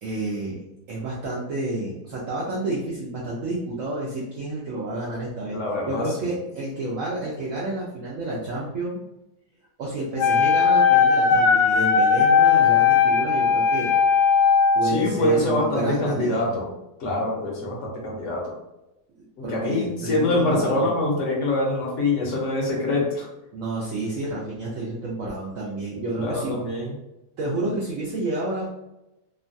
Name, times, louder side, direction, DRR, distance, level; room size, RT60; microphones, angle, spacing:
voice 1, 0.0-0.6 0.9-5.6 5.9-9.0 9.8-13.9 14.7-16.6 19.4-20.9 23.5-26.5 27.4-28.7, right 2 dB, 65° right, -5 dB, 0.9 m, -30 dB
voice 2, 5.5-6.1 14.8-16.6 17.0-18.5 19.4-23.3 26.2-26.9, left 2 dB, 60° left, -2 dB, 0.9 m, -24 dB
Wind instrument woodwind instrument, 10.2-15.0, left 6 dB, 85° left, 1.2 m, -18 dB
3.0 x 2.2 x 2.5 m, 0.92 s
omnidirectional pair, 1.8 m